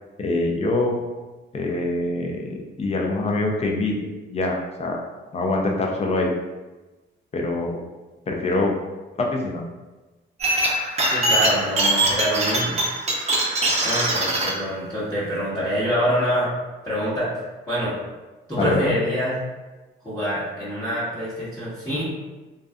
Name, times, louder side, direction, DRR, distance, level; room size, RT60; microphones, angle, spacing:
voice 1, 0.2-1.0 1.5-3.9 4.3-5.0 5.3-6.3 7.3-7.8 8.3-8.7 9.2-9.6 18.6-18.9, left 2 dB, 30° left, 0 dB, 0.5 m, -24 dB
sound 1, 10.4-14.5, right 1 dB, 35° right, 0.6 m, -22 dB
voice 2, 11.1-12.7 13.8-16.5 16.8-17.3 17.7-18.0 18.5-19.4 20.0-22.0, equal, 15° left, -13 dB, 1.0 m, -25 dB
2.6 x 2.2 x 2.3 m, 1.2 s
cardioid pair, 90°, 20 cm